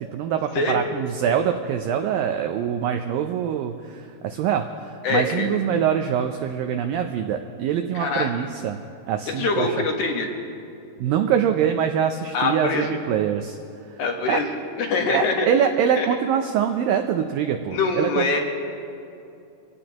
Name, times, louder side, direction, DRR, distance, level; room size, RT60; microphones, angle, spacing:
voice 1, 0.1-8.8 9.1-9.8 11.0-13.6 14.3-14.4 15.1-18.2, right 8 dB, 90° right, 6 dB, 2.0 m, -24 dB
voice 2, 5.0-5.5 7.9-8.3 9.3-10.3 12.3-12.9 14.0-14.5 14.8-15.5 16.0-16.1 17.7-18.4, left 3 dB, 60° left, 2 dB, 2.2 m, -23 dB
25.0 x 17.0 x 2.9 m, 2.6 s
omnidirectional pair, 4.8 m